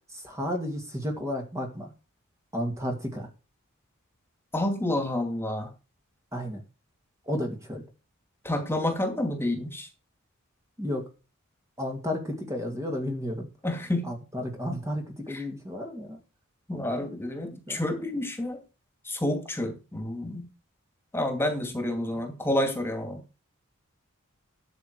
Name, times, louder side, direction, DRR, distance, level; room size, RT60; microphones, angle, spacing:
voice 1, 0.2-1.9 2.5-3.3 6.3-6.6 7.3-7.8 10.8-11.0 11.8-13.5 14.1-16.2 16.7-17.1 17.7-17.8, left 1 dB, 15° right, 2 dB, 2.3 m, -32 dB
voice 2, 4.5-5.7 8.4-9.9 13.6-14.1 15.3-15.5 16.7-18.6 19.0-20.5 21.1-23.2, left 1 dB, 10° left, 5 dB, 2.5 m, -29 dB
12.5 x 7.0 x 4.7 m, 0.31 s
head